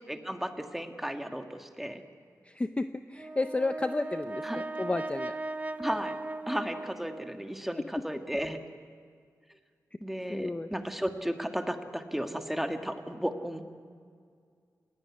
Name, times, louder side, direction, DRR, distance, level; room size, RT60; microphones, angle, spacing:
voice 1, 0.1-2.0 4.4-4.6 5.8-6.1 6.5-8.6 10.0-13.6, equal, 5° right, 5 dB, 1.7 m, -34 dB
voice 2, 2.4-5.4 7.8-7.9 10.3-10.7, left 2 dB, 20° left, 9 dB, 0.6 m, -32 dB
Brass instrument, 3.1-7.6, right 2 dB, 25° right, 0.6 m, -38 dB
29.5 x 17.5 x 9.6 m, 2.1 s
wide cardioid pair, 140°, 7 cm